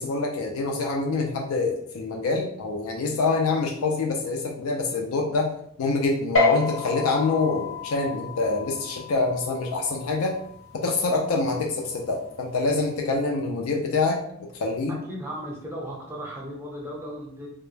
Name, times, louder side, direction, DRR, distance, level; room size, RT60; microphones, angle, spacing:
voice 1, 0.0-5.5 5.8-10.3 10.7-14.9, left 3 dB, 90° left, 1 dB, 0.4 m, -26 dB
sound 1, 6.4-13.1, left 3 dB, 70° left, 0.8 m, -31 dB
voice 2, 14.9-17.5, equal, 10° right, -3 dB, 0.6 m, -36 dB
2.2 x 2.0 x 3.1 m, 0.68 s
head